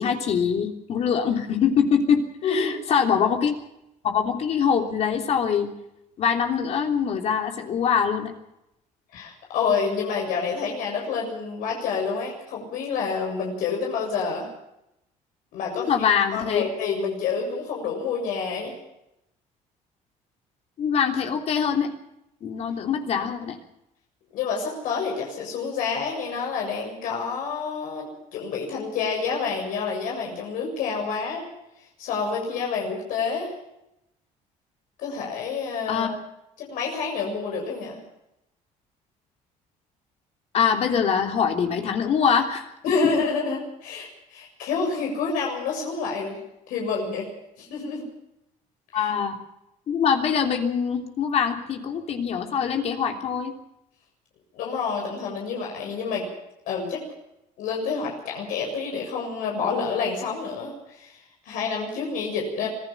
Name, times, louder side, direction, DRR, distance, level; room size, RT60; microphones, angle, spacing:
voice 1, 0.0-3.6 4.0-5.7 6.2-8.3 15.7-16.6 20.8-21.9 22.4-23.6 35.9-36.1 40.5-42.7 48.9-49.3 49.9-53.5, left 7 dB, 50° left, 3 dB, 3.3 m, -23 dB
voice 2, 2.4-2.8 9.1-14.5 15.5-18.7 24.3-31.5 32.0-33.5 35.0-36.1 36.6-38.0 42.8-46.4 46.7-47.3 47.6-48.1 48.9-49.1 54.5-56.3 56.7-57.0 57.6-61.2 61.4-62.7, left 5 dB, 80° left, 0 dB, 7.5 m, -28 dB
26.0 x 17.0 x 5.9 m, 0.84 s
cardioid pair, 130°, 14 cm